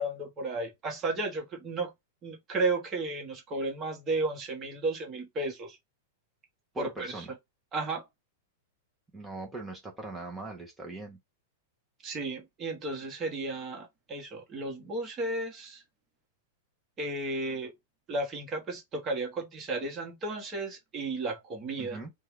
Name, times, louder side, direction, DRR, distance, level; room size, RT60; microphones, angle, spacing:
voice 1, 0.0-1.9 2.2-5.8 6.8-7.2 7.7-8.0 12.0-15.8 17.0-17.7 18.1-22.0, right 2 dB, 25° right, 1.2 m, -33 dB
voice 2, 6.7-7.3 9.1-11.2 21.8-22.1, right 2 dB, 10° right, 0.8 m, -40 dB
2.8 x 2.3 x 3.2 m
supercardioid pair, 150°, 0 cm